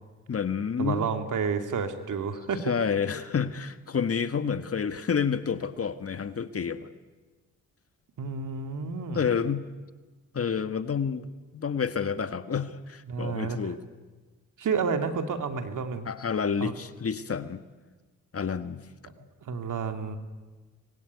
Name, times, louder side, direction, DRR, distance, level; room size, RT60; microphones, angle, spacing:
voice 1, 0.3-1.1 2.6-6.9 9.1-9.7 10.3-11.3 11.5-13.8 16.1-17.6 18.3-18.8, left 6 dB, 40° left, 11 dB, 1.6 m, -29 dB
voice 2, 0.8-2.7 8.2-9.2 13.1-13.6 14.6-16.1 16.6-16.7 19.2-20.2, right 5 dB, 60° right, 7 dB, 2.6 m, -30 dB
25.5 x 21.5 x 9.6 m, 1.3 s
supercardioid pair, 55°, 34 cm